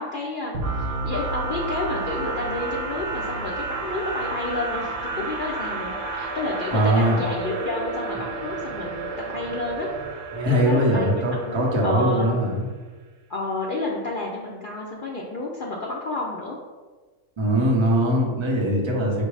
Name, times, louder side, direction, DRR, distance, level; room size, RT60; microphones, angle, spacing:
voice 1, 0.0-9.9 10.5-12.3 13.3-16.6, left 2 dB, 75° left, -3 dB, 0.4 m, -30 dB
sound 1, 0.5-12.3, right 3 dB, 60° right, 1.0 m, -31 dB
voice 2, 6.7-7.2 10.3-12.7 17.4-19.3, equal, 25° right, -3 dB, 0.6 m, -21 dB
5.2 x 2.0 x 4.7 m, 1.3 s
omnidirectional pair, 1.6 m